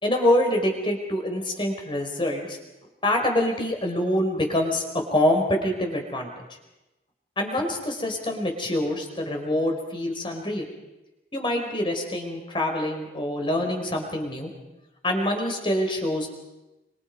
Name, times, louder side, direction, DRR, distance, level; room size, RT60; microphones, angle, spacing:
voice 1, 0.0-2.6 3.0-6.3 7.4-10.7 11.3-14.5 15.0-16.3, left 1 dB, 30° left, 3 dB, 4.7 m, -25 dB
27.5 x 25.5 x 5.4 m, 1.0 s
head